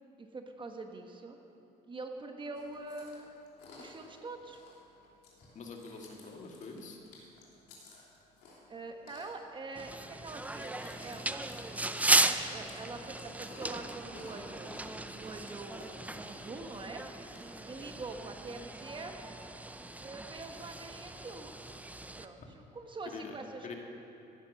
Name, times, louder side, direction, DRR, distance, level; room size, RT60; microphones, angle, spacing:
voice 1, 0.2-1.4 1.9-3.3 3.8-4.6 8.7-14.7 15.0-16.0 16.3-17.1 17.6-19.2 20.0-21.5 22.2-23.7, right 3 dB, 30° right, 4 dB, 1.2 m, -44 dB
Chewing mastication, 2.5-17.4, left 2 dB, 75° left, 3.1 m, -56 dB
voice 2, 5.6-7.0 23.1-23.4 23.6-23.7, left 4 dB, 45° left, 2 dB, 1.9 m, -44 dB
sound 1, 9.8-22.3, right 2 dB, 10° right, 0.5 m, -36 dB
15.0 x 10.5 x 6.4 m, 2.9 s
cardioid pair, 110°, 17 cm